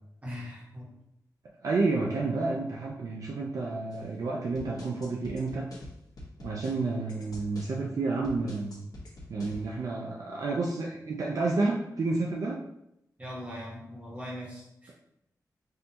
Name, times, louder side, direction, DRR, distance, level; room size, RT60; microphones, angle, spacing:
voice 1, 0.2-0.9 13.2-14.9, equal, 20° right, -5 dB, 1.3 m, -40 dB
voice 2, 1.6-5.6 6.4-8.8 9.3-12.6, right 3 dB, 55° right, -2 dB, 0.5 m, -30 dB
sound 1, 3.9-4.1 4.6-7.7 8.2-9.7, left 1 dB, 65° left, 1.0 m, -46 dB
5.5 x 2.7 x 2.8 m, 0.82 s
wide cardioid pair, 175°, 7 cm